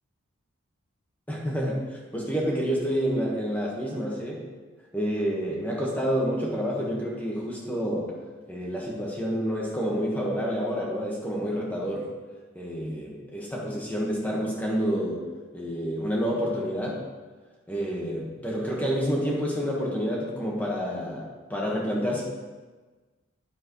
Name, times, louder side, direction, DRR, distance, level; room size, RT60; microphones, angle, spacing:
voice 1, 1.3-4.4 4.9-8.1 8.5-12.1 12.5-15.2 15.5-17.0 17.7-22.2, equal, 5° left, -3 dB, 1.5 m, -28 dB
10.0 x 7.8 x 3.2 m, 1.3 s
head